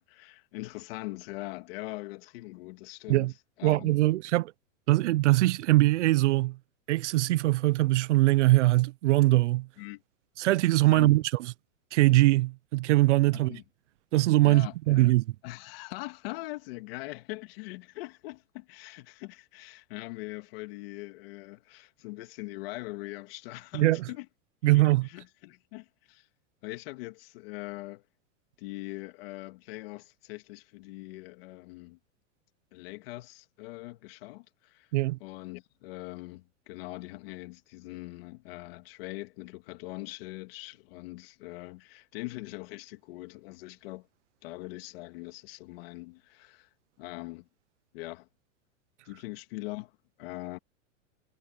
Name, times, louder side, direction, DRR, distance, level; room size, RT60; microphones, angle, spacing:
voice 1, 0.0-3.3 3.6-4.0 9.8-10.0 10.9-11.2 13.3-13.6 14.4-15.1 15.4-24.3 24.6-26.3 26.6-28.0 28.6-32.0 32.7-34.9 35.2-44.1 44.4-46.7 47.0-47.5 47.9-48.3 49.1-49.9 50.2-50.6, left 21 dB, 45° left, 2.4 m, -42 dB
voice 2, 3.6-4.5 4.9-6.6 6.9-9.7 10.4-11.2 11.9-13.6 14.1-15.2 23.7-24.0 24.6-25.1 34.9-35.2, right 18 dB, 65° right, 0.6 m, -22 dB
supercardioid pair, 165°, 40 cm